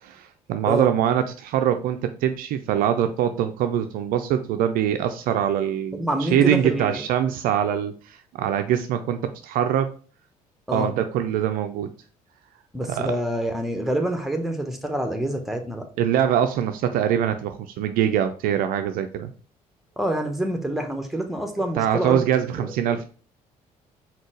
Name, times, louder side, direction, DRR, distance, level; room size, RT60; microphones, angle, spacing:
voice 1, 0.0-9.9 10.7-11.9 13.0-13.2 16.0-19.3 21.8-23.1, right 9 dB, 50° right, 8 dB, 0.4 m, -23 dB
voice 2, 5.9-7.0 10.7-10.9 12.7-15.9 20.0-22.2 22.6-22.7, right 1 dB, ahead, 4 dB, 0.9 m, -27 dB
4.2 x 4.0 x 3.1 m, 0.39 s
figure-of-eight pair, 50°, 19 cm